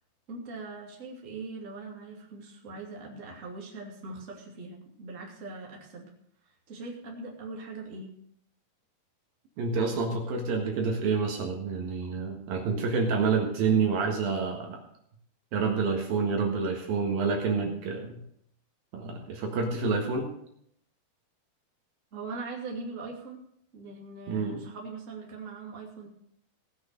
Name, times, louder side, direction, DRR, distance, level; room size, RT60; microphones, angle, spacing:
voice 1, 0.3-6.1 6.4-8.1 22.1-23.4 23.7-26.1, right 3 dB, 20° right, -1 dB, 2.4 m, -41 dB
voice 2, 9.6-14.8 15.5-18.2 18.9-20.3 24.3-24.6, right 4 dB, 65° right, 1 dB, 3.2 m, -28 dB
18.5 x 6.2 x 6.8 m, 0.69 s
omnidirectional pair, 4.7 m